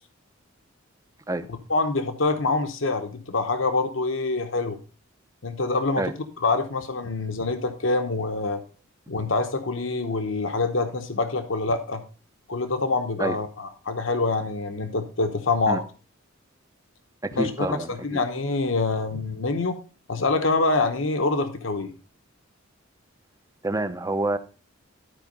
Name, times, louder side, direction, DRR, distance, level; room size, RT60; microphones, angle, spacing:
voice 1, 1.7-4.8 5.4-6.1 6.4-8.6 9.1-12.0 12.5-15.8 17.4-19.8 20.1-21.9, left 3 dB, 65° left, 1.0 m, -25 dB
voice 2, 17.2-18.2 23.6-24.4, right 2 dB, 15° right, 0.6 m, -27 dB
12.5 x 4.7 x 5.3 m
head